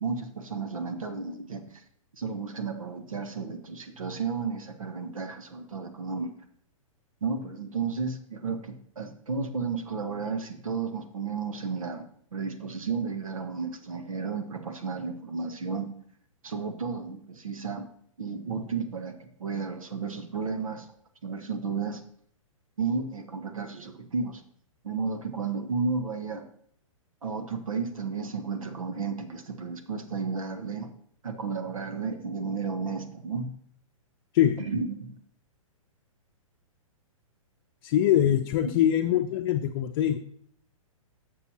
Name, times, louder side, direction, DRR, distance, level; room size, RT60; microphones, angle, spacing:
voice 1, 0.0-1.8 2.2-6.3 7.2-12.0 12.3-15.9 16.4-17.9 18.2-20.9 21.2-22.0 22.8-24.4 24.8-26.4 27.2-30.9 31.2-33.5 34.6-35.2 38.2-38.7, right 5 dB, 75° right, 7 dB, 1.2 m, -33 dB
voice 2, 34.3-34.7 37.8-40.2, left 11 dB, 45° left, 4 dB, 0.6 m, -23 dB
12.0 x 6.9 x 2.9 m, 0.64 s
figure-of-eight pair, 120°, 17 cm